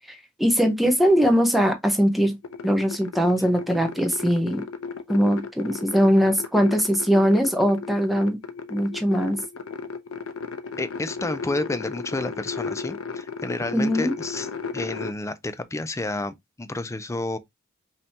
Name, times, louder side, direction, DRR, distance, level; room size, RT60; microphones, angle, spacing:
voice 1, 0.1-2.4 2.6-4.6 5.1-8.4 8.7-9.4 13.7-14.1, equal, ahead, 0.8 m, -21 dB
sound 1, 2.4-15.1, left 5 dB, 75° left, 0.7 m, -35 dB
voice 2, 10.8-14.5 14.7-17.4, left 2 dB, 15° left, 0.4 m, -30 dB
5.3 x 2.8 x 2.8 m
head